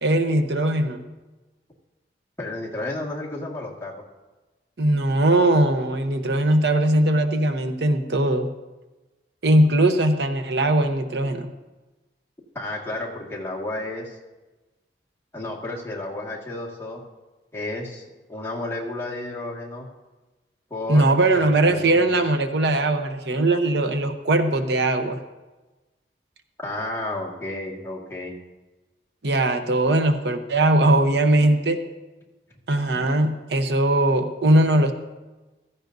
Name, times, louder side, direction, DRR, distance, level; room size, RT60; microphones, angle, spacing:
voice 1, 0.0-1.0 4.8-8.5 9.4-11.5 20.9-25.2 29.2-31.8 32.7-34.9, right 1 dB, 75° right, 6 dB, 0.9 m, -20 dB
voice 2, 2.4-4.0 12.6-14.2 15.3-17.0 17.5-18.0 18.3-19.9 20.7-21.1 21.3-22.2 26.6-28.4, left 2 dB, 15° left, -3 dB, 1.8 m, -32 dB
15.5 x 14.0 x 2.7 m, 1.1 s
head